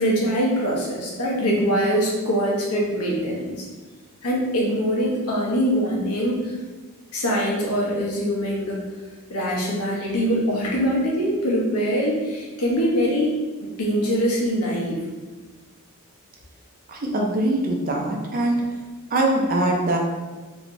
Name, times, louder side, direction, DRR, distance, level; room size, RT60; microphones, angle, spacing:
voice 1, 0.0-3.7 4.2-6.5 7.1-8.8 9.3-13.4 13.8-15.0, equal, 85° left, -3 dB, 0.9 m, -23 dB
voice 2, 16.9-18.6 19.1-20.0, right 1 dB, 40° right, 0 dB, 0.5 m, -22 dB
3.1 x 3.1 x 2.6 m, 1.3 s
head